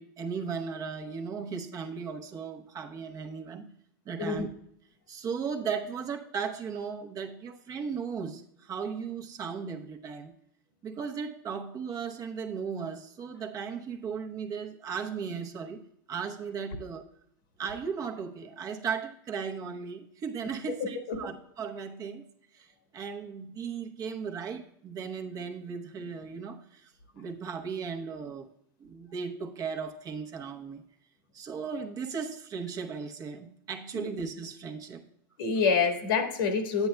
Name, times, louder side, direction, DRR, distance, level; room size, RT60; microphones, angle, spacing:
voice 1, 0.0-3.7 4.1-4.5 5.1-10.3 10.8-15.8 16.1-17.0 17.6-22.2 22.5-28.5 28.8-30.8 31.3-35.0, right 6 dB, 30° right, 3 dB, 0.8 m, -36 dB
voice 2, 35.4-36.9, left 5 dB, 80° left, 5 dB, 1.6 m, -27 dB
10.0 x 9.1 x 2.2 m, 0.74 s
supercardioid pair, 125°, 12 cm